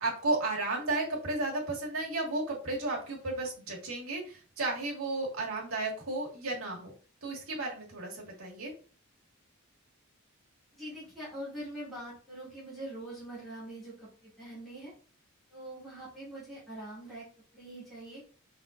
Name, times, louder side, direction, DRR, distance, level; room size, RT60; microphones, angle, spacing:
voice 1, 0.0-6.9 7.2-8.7, right 2 dB, 80° right, -2 dB, 1.5 m, -33 dB
voice 2, 10.7-14.9 15.5-17.3 17.5-18.2, right 1 dB, ahead, -11 dB, 2.1 m, -43 dB
5.2 x 3.6 x 2.4 m, 0.40 s
head